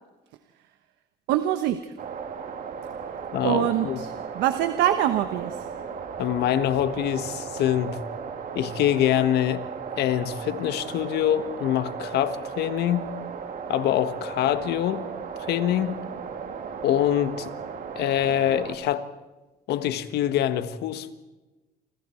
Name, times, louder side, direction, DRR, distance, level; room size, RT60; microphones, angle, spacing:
voice 1, 1.3-1.9 3.4-5.7, right 12 dB, 85° right, 1.2 m, -24 dB
sound 1, 2.0-18.7, right 6 dB, 55° right, 2.8 m, -36 dB
voice 2, 3.3-4.0 6.2-8.0 8.5-9.6 10.0-13.1 13.7-15.1 15.5-16.0 16.8-17.5 17.9-19.1 19.7-21.1, left 11 dB, 75° left, 1.6 m, -25 dB
29.0 x 25.5 x 4.6 m
cardioid pair, 110°, 17 cm